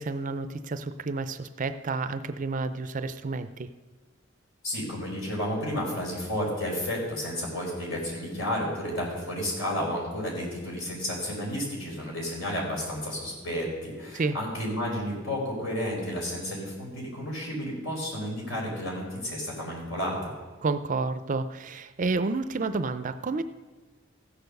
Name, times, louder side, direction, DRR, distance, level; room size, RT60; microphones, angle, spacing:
voice 1, 0.0-3.7 14.1-14.4 20.6-23.4, right 3 dB, 40° right, 11 dB, 0.5 m, -30 dB
voice 2, 4.6-20.3, equal, 75° left, -2 dB, 4.3 m, -32 dB
15.0 x 6.9 x 6.6 m, 1.4 s
head